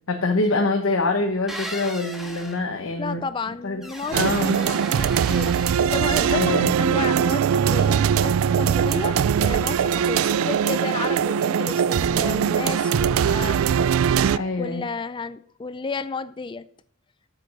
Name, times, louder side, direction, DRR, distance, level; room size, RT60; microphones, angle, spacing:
voice 1, 0.1-3.2 3.6-3.8 4.1-4.6 6.3-6.7 14.3-14.8, left 2 dB, 80° left, 1.1 m, -24 dB
sound 1, 1.5-2.6 3.8-6.2, equal, ahead, 1.5 m, -38 dB
voice 2, 3.0-13.6 14.6-16.7, left 4 dB, 25° left, 0.4 m, -32 dB
sound 2, 4.1-14.4, right 8 dB, 90° right, 0.3 m, -21 dB
9.7 x 7.7 x 5.3 m
head